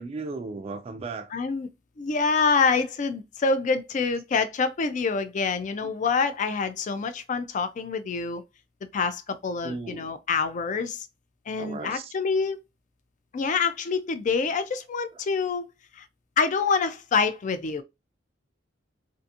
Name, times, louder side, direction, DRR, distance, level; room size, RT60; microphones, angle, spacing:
voice 1, 0.0-1.3 5.8-5.9 9.6-10.1 11.6-12.1, right 3 dB, 30° right, 0.3 m, -36 dB
voice 2, 1.3-1.7 2.0-8.4 8.9-11.1 11.5-12.6 13.3-15.6 16.0-16.1 16.4-17.8, left 5 dB, 40° left, 0.4 m, -26 dB
2.7 x 2.5 x 2.4 m
head